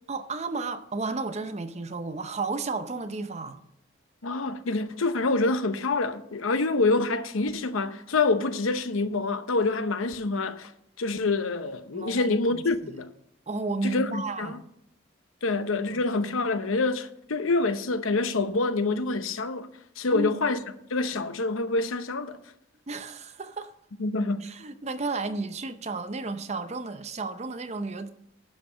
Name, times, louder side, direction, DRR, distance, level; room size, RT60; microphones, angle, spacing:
voice 1, 0.1-3.6 11.9-12.6 13.5-14.7 15.9-16.0 20.1-20.4 22.9-23.7 24.4-28.1, right 3 dB, 35° right, 0.6 m, -33 dB
voice 2, 4.2-10.7 11.0-13.1 13.8-14.6 15.4-19.7 20.0-20.6 20.9-22.4 24.0-24.5, left 3 dB, 90° left, 0.8 m, -26 dB
11.5 x 5.8 x 6.0 m
head